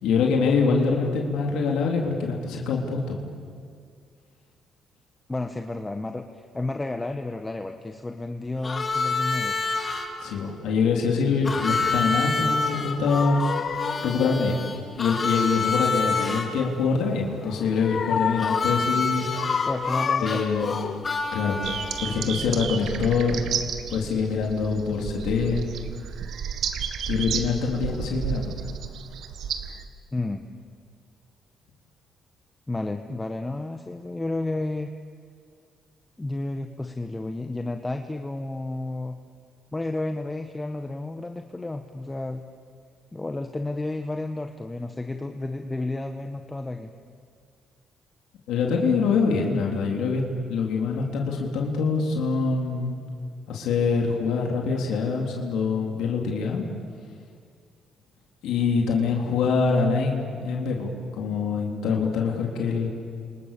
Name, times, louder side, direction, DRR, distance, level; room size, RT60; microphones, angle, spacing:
voice 1, 0.0-3.2 10.2-13.4 14.0-14.6 14.9-19.3 20.2-20.7 21.3-21.6 22.0-23.4 23.9-25.7 27.1-28.6 48.5-50.2 50.5-53.0 53.5-56.6 58.4-62.9, left 5 dB, 85° left, 0 dB, 3.5 m, -24 dB
voice 2, 5.3-9.6 19.7-20.7 30.1-30.5 32.7-34.9 36.2-39.2 39.7-42.4 43.1-46.9, left 2 dB, 15° left, 5 dB, 1.3 m, -31 dB
Harmonica, 8.6-10.1 11.4-16.5 18.4-22.3, left 3 dB, 35° left, 3.9 m, -27 dB
sound 1, 12.6-14.2 17.4-18.9 19.3-21.2 21.7-21.8, left 7 dB, 55° left, 0.7 m, -30 dB
sound 2, 21.6-29.8, right 7 dB, 75° right, 1.5 m, -32 dB
30.0 x 26.5 x 6.9 m, 2.1 s
cardioid pair, 90°, 0 cm